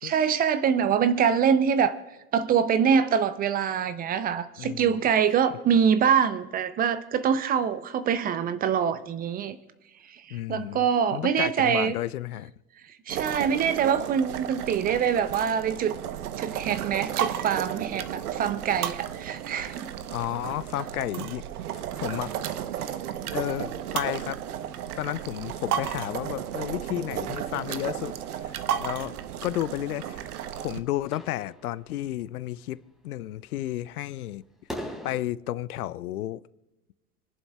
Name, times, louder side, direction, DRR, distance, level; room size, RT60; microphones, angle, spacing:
voice 1, 0.0-2.0 2.3-9.6 10.1-11.9 13.1-15.9 16.4-19.9, right 7 dB, 20° right, 0.5 m, -24 dB
voice 2, 4.6-5.0 10.3-10.8 11.1-12.5 20.1-21.4 22.0-22.3 23.3-24.4 25.0-28.2 28.4-29.1 29.4-30.3 30.6-34.4 35.0-36.4, left 14 dB, 70° left, 0.6 m, -32 dB
sound 1, 13.1-30.8, right 10 dB, 70° right, 1.0 m, -33 dB
sound 2, 15.8-35.2, equal, ahead, 3.1 m, -50 dB
29.0 x 11.0 x 2.3 m
hypercardioid pair, 100°, 47 cm